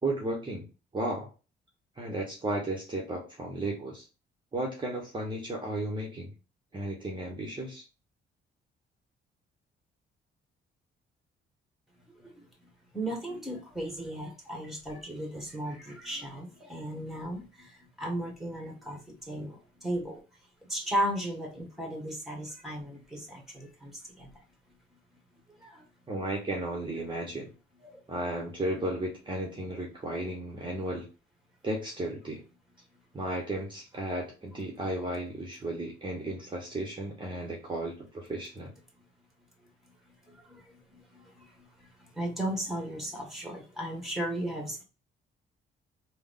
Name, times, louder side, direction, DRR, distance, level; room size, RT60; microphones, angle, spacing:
voice 1, 0.0-0.7 0.9-1.3 2.0-4.1 4.5-6.3 6.7-7.8 26.1-27.5 28.1-31.1 31.6-32.4 33.1-38.7, right 1 dB, 25° right, -1 dB, 1.1 m, -34 dB
voice 2, 12.2-12.5 12.9-20.2 20.7-24.4 25.6-25.9 27.9-28.0 39.0-39.1 39.6-44.8, right 1 dB, ahead, 2 dB, 1.6 m, -36 dB
3.6 x 2.3 x 3.6 m, 0.31 s
cardioid pair, 90°, 20 cm